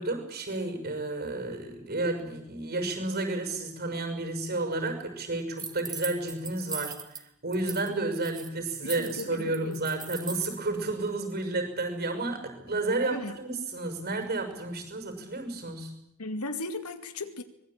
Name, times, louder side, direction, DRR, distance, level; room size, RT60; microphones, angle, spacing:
voice 1, 0.0-7.0 7.4-15.9, right 2 dB, 45° right, 7 dB, 6.2 m, -31 dB
sound 1, 5.6-7.2 7.5-7.9 8.1-10.6, right 5 dB, 20° right, 2.2 m, -39 dB
voice 2, 8.8-9.8 13.1-13.3 16.2-17.4, left 2 dB, 90° left, 8 dB, 2.4 m, -36 dB
24.5 x 20.5 x 8.9 m, 0.77 s
head